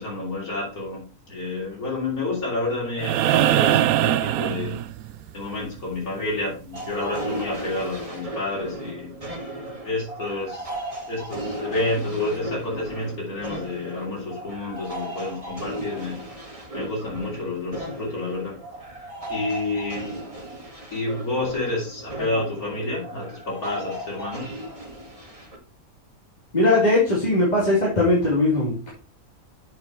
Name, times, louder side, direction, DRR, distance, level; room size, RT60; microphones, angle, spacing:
voice 1, 0.0-4.8 5.3-9.1 9.8-10.7 11.0-16.2 16.7-18.6 19.3-20.1 20.9-24.5, left 2 dB, 75° left, -4 dB, 4.1 m, -29 dB
sound 1, 3.0-5.3 7.2-7.3, right 12 dB, 75° right, 1.0 m, -21 dB
sound 2, 6.7-25.6, right 1 dB, 25° right, 2.0 m, -36 dB
voice 2, 26.5-28.9, left 2 dB, 30° left, -7 dB, 3.3 m, -20 dB
8.2 x 6.1 x 4.6 m, 0.35 s
omnidirectional pair, 1.5 m